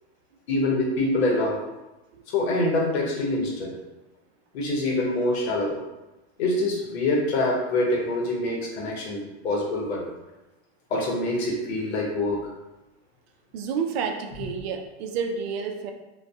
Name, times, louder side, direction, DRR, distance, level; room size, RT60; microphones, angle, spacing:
voice 1, 0.5-1.6 2.3-3.7 4.5-5.8 6.4-10.0 10.9-12.4, left 2 dB, 75° left, -1 dB, 0.8 m, -25 dB
voice 2, 13.5-15.9, right 6 dB, 70° right, 4 dB, 0.5 m, -30 dB
2.5 x 2.2 x 2.2 m, 1.0 s
hypercardioid pair, 115°, 32 cm